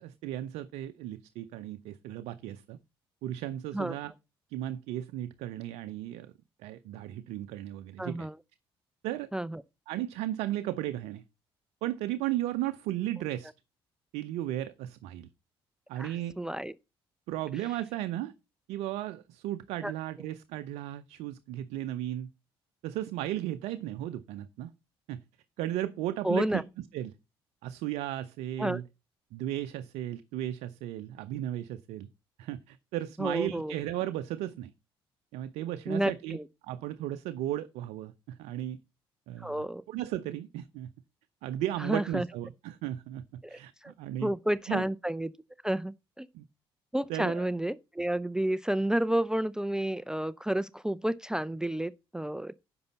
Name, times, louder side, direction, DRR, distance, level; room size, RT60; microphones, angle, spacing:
voice 1, 0.0-2.8 3.2-4.1 4.5-6.3 6.6-8.3 9.0-9.3 9.9-11.2 11.8-13.5 14.1-15.3 15.9-16.4 17.3-18.3 18.7-22.3 22.8-24.7 25.1-25.2 25.6-26.6 26.9-27.1 27.6-28.8 29.3-32.1 32.4-34.7 35.3-36.4 36.6-38.8 39.3-40.9 41.4-44.3 44.7-44.9 46.3-46.4 47.1-47.5, right 13 dB, 60° right, 0.7 m, -35 dB
voice 2, 8.0-8.3 9.3-9.6 16.0-16.7 19.8-19.9 26.2-26.6 28.6-28.8 33.2-33.7 35.9-36.4 39.4-39.8 41.8-42.3 43.4-43.9 44.2-45.3 45.6-46.3 46.9-52.5, right 1 dB, 5° right, 0.5 m, -30 dB
10.5 x 6.9 x 4.2 m
figure-of-eight pair, 45°, 13 cm